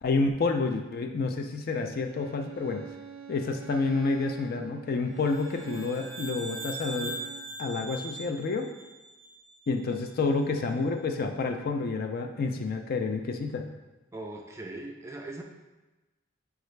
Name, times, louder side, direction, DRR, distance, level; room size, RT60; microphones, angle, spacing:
voice 1, 0.0-2.8 3.3-7.2 7.6-8.7 9.7-13.7, left 3 dB, 50° left, 5 dB, 0.4 m, -29 dB
Bowed string instrument, 2.1-7.6, right 7 dB, 90° right, 0.4 m, -45 dB
sound 1, 5.2-9.8, right 2 dB, 15° left, 0.8 m, -41 dB
voice 2, 14.1-15.4, right 2 dB, 15° right, 1 dB, 0.4 m, -40 dB
6.4 x 2.4 x 3.2 m, 1.1 s
head